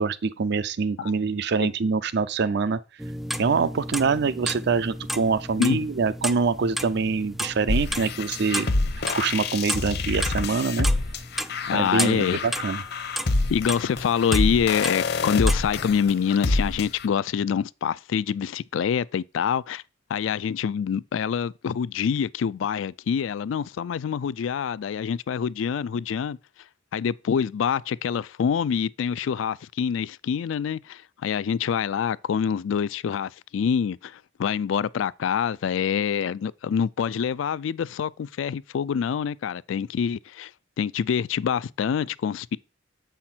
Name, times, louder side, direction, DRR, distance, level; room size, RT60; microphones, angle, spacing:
voice 1, 0.0-2.8 3.4-8.7 9.2-10.9 11.7-12.8, right 4 dB, 60° right, 0.5 m, -25 dB
sound 1, 3.0-15.7, equal, ahead, 0.3 m, -34 dB
sound 2, 7.7-17.1, left 3 dB, 60° left, 0.8 m, -27 dB
voice 2, 11.7-12.4 13.5-19.8 20.1-26.4 26.9-40.5 40.8-42.6, left 7 dB, 80° left, 0.3 m, -26 dB
7.4 x 5.7 x 4.4 m
head